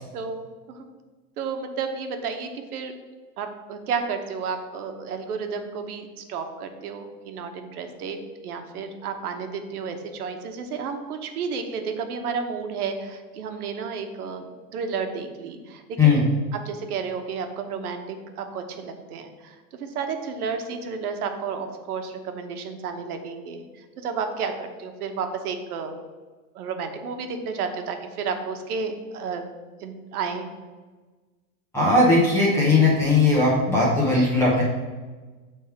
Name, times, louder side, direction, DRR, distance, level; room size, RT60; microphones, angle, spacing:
voice 1, 0.1-0.9 1.4-2.9 3.4-8.2 8.4-16.2 16.5-26.0 26.5-29.5 29.8-30.5, right 5 dB, 85° right, 6 dB, 1.1 m, -32 dB
voice 2, 31.7-34.6, left 3 dB, 5° left, -6 dB, 0.5 m, -18 dB
6.6 x 3.5 x 5.6 m, 1.3 s
supercardioid pair, 175°, 44 cm